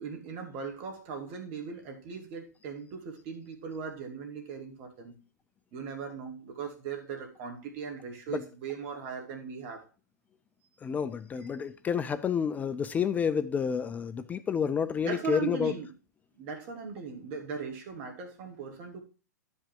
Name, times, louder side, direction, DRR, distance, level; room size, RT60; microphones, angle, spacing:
voice 1, 0.0-5.1 5.7-9.9 15.0-15.9 16.4-19.0, right 6 dB, 40° right, 2.4 m, -39 dB
voice 2, 10.8-15.7, left 7 dB, 15° left, 0.4 m, -29 dB
11.0 x 5.4 x 4.6 m
figure-of-eight pair, 105°, 9 cm